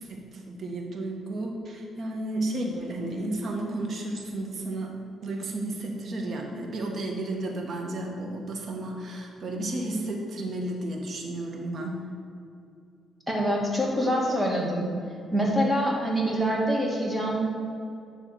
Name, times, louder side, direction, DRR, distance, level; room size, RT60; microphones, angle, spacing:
voice 1, 0.0-12.1, right 1 dB, 55° right, 1 dB, 1.4 m, -33 dB
voice 2, 13.3-14.9 15.3-17.4, equal, 5° right, -2 dB, 2.0 m, -25 dB
10.0 x 3.6 x 6.8 m, 2.5 s
cardioid pair, 90°, 0 cm